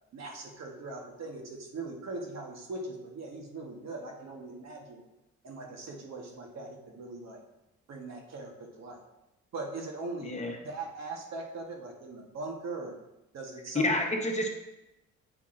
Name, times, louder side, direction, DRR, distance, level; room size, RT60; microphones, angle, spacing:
voice 1, 0.1-5.0 5.4-7.4 7.9-9.0 9.5-13.0 13.3-14.0, right 3 dB, 60° right, 1 dB, 1.3 m, -40 dB
voice 2, 13.7-14.5, left 2 dB, 25° left, 2 dB, 1.0 m, -28 dB
8.2 x 5.4 x 2.6 m, 0.94 s
cardioid pair, 90°, 30 cm